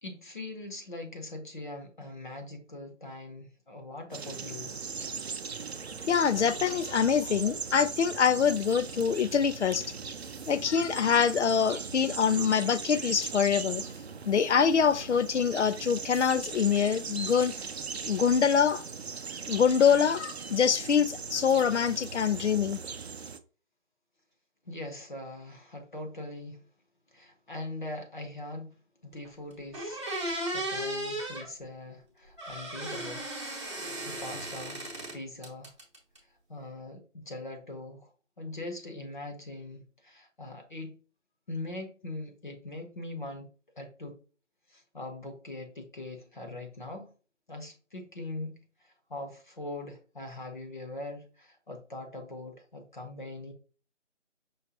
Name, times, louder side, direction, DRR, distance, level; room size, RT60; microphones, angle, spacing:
voice 1, 0.0-4.8 24.6-26.6 27.1-33.3 34.0-34.8 35.1-35.7 36.5-38.1 38.4-41.0 41.5-43.5 43.8-44.2 44.7-47.1 47.5-53.5, left 2 dB, 40° left, 1.0 m, -41 dB
sound 1, 4.1-23.4, right 5 dB, 60° right, 0.5 m, -39 dB
voice 2, 6.1-9.8 10.5-13.8 14.3-17.5 18.1-18.8 19.5-22.8, left 7 dB, 65° left, 0.5 m, -25 dB
sound 2, 29.2-29.3 29.7-31.5 32.4-35.2 35.4-36.2, right 1 dB, 25° right, 0.9 m, -35 dB
5.5 x 3.1 x 2.8 m
figure-of-eight pair, 170°, 37 cm